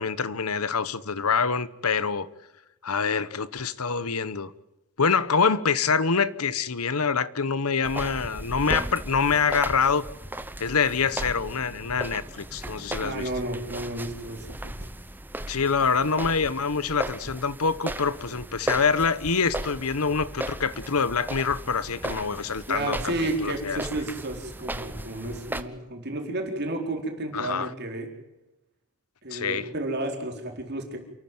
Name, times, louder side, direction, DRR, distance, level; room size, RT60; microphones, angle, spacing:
voice 1, 0.0-2.3 2.8-4.5 5.0-10.0 10.6-13.3 15.5-23.8 27.3-27.7 29.3-29.7, left 5 dB, 85° left, 1.1 m, -25 dB
sound 1, 7.8-25.6, right 1 dB, 10° right, 1.0 m, -36 dB
voice 2, 13.0-14.9 22.7-28.1 29.2-31.0, right 2 dB, 50° right, 4.3 m, -32 dB
28.5 x 14.0 x 9.2 m
head